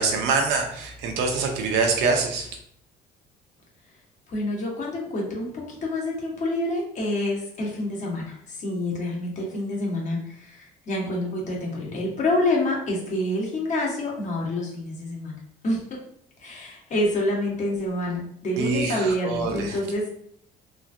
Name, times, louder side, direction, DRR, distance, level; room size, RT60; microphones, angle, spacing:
voice 1, 0.0-2.5 18.6-19.8, right 4 dB, 90° right, 3 dB, 0.7 m, -24 dB
voice 2, 4.3-15.4 15.6-16.0 16.4-20.2, left 1 dB, 45° left, -2 dB, 1.1 m, -27 dB
3.0 x 2.4 x 2.6 m, 0.65 s
cardioid pair, 110°, 17 cm